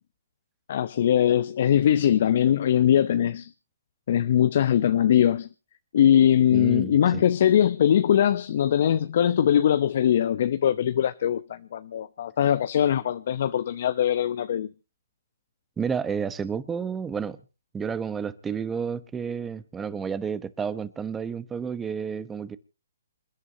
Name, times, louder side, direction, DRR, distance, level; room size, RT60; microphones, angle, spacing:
voice 1, 0.7-3.5 4.1-5.5 5.9-14.7, left 10 dB, 50° left, 0.8 m, -21 dB
voice 2, 6.5-7.2 15.8-17.4 17.7-22.6, right 6 dB, 10° right, 1.1 m, -31 dB
27.5 x 11.0 x 2.8 m
hypercardioid pair, 150°, 0 cm